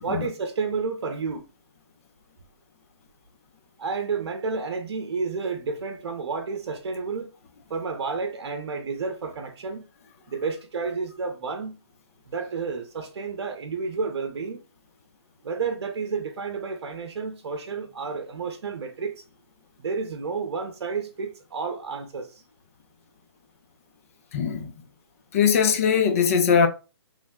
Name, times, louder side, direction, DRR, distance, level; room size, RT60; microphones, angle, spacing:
voice 1, 0.0-1.5 3.8-7.3 7.7-9.9 10.3-11.8 12.3-14.6 15.4-19.2 19.8-22.4, right 4 dB, 65° right, 0.7 m, -31 dB
voice 2, 24.3-24.7 25.3-26.7, left 6 dB, 30° left, 0.5 m, -20 dB
3.2 x 2.1 x 3.5 m
hypercardioid pair, 155°, 14 cm